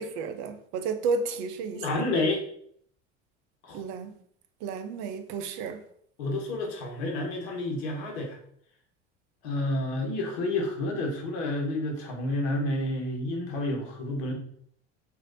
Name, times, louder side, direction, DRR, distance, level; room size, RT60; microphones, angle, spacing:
voice 1, 0.0-1.8 3.7-4.1 4.6-5.8, right 4 dB, 55° right, 0.5 m, -32 dB
voice 2, 1.7-2.4 3.6-3.8 6.2-8.4 9.4-14.3, left 2 dB, 70° left, 1.1 m, -30 dB
3.1 x 2.6 x 2.5 m
hypercardioid pair, 75°, 34 cm